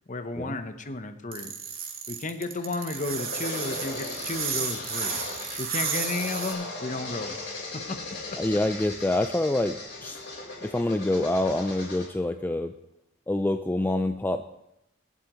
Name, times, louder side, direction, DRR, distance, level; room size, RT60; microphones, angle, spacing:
voice 1, 0.1-1.5 2.1-5.2 5.6-7.4 7.9-8.0, left 2 dB, 40° left, 8 dB, 0.9 m, -33 dB
sound 1, 1.3-6.5, right 7 dB, 50° right, 2.0 m, -32 dB
sound 2, 2.4-12.1, left 2 dB, 65° left, 4.3 m, -38 dB
voice 2, 8.4-10.2 10.6-12.7 13.3-14.4, left 1 dB, 10° left, 7 dB, 0.3 m, -26 dB
24.5 x 8.2 x 3.1 m, 0.87 s
head